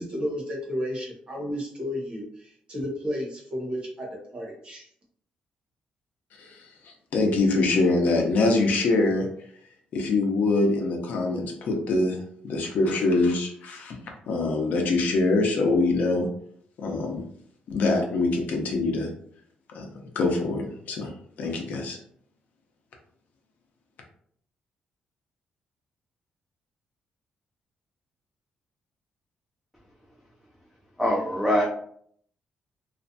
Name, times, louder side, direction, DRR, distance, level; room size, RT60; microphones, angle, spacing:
voice 1, 0.0-4.9, equal, 35° right, -2 dB, 0.8 m, -32 dB
voice 2, 6.4-9.3 9.9-14.0 14.3-16.3 16.8-17.2 17.7-19.1 19.7-19.9 20.1-22.0, left 3 dB, 65° left, 2 dB, 0.5 m, -24 dB
voice 3, 31.0-31.6, equal, ahead, -4 dB, 0.3 m, -23 dB
2.4 x 2.1 x 2.6 m, 0.63 s
cardioid pair, 160°, 3 cm